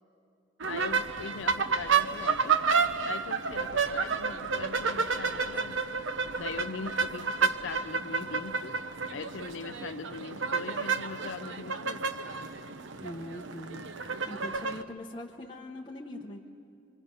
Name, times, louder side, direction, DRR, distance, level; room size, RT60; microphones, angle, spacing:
sound 1, 0.6-14.8, right 5 dB, 75° right, 0.8 m, -30 dB
voice 1, 0.7-2.7 3.1-5.8 6.4-8.8 9.1-12.1, left 5 dB, 80° left, 11 dB, 0.5 m, -41 dB
voice 2, 13.0-13.9 14.3-16.4, left 1 dB, 25° left, -2 dB, 0.9 m, -42 dB
26.0 x 24.5 x 5.4 m, 2.5 s
head